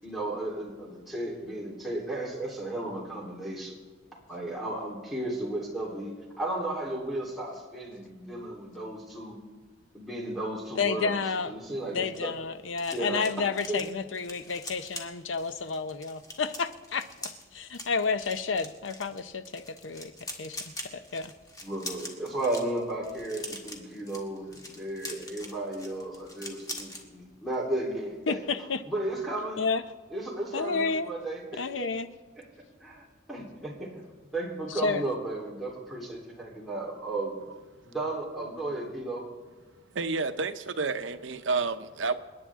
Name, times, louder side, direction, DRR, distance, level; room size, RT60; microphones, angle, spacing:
voice 1, 0.0-3.8 4.3-9.4 9.9-11.2 11.5-12.3 12.9-13.2 13.7-13.8 21.6-28.4 28.9-29.6 30.1-31.9 32.8-34.0 34.3-37.4 37.8-39.2, right 2 dB, ahead, -6 dB, 3.6 m, -34 dB
voice 2, 10.8-11.6 11.9-17.1 17.5-20.1 20.4-21.3 28.3-28.8 29.6-29.8 30.5-31.1 31.6-32.1 34.8-35.0, left 4 dB, 90° left, 11 dB, 0.7 m, -30 dB
sound 1, 11.8-27.0 27.4-27.6 27.9-28.2, left 2 dB, 20° left, 1.8 m, -43 dB
voice 3, 39.9-42.2, right 4 dB, 80° right, 10 dB, 0.8 m, -30 dB
28.5 x 9.8 x 3.7 m, 1.3 s
head